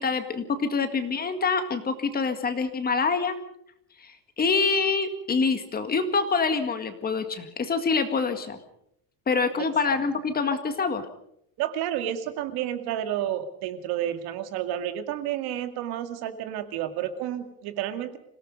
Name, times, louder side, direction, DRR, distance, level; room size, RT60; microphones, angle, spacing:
voice 1, 0.0-3.4 4.0-4.1 4.4-8.6 9.3-11.0, left 4 dB, 20° left, 8 dB, 1.9 m, -26 dB
voice 2, 11.6-18.2, right 11 dB, 60° right, 8 dB, 2.3 m, -30 dB
26.5 x 18.0 x 5.5 m, 0.73 s
cardioid pair, 155°, 41 cm